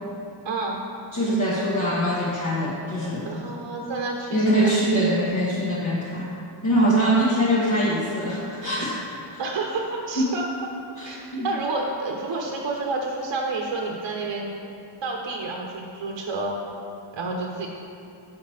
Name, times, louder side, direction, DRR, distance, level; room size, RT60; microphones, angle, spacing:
voice 1, 0.4-0.8 3.2-4.7 9.4-10.5 11.0-14.5 15.0-16.6 17.1-17.7, right 3 dB, 60° right, 0 dB, 0.8 m, -29 dB
voice 2, 1.1-3.3 4.3-6.3 6.6-8.9 10.2-10.3 11.0-11.5, equal, 40° left, -7 dB, 1.0 m, -23 dB
5.7 x 4.5 x 6.3 m, 2.6 s
wide cardioid pair, 115°, 48 cm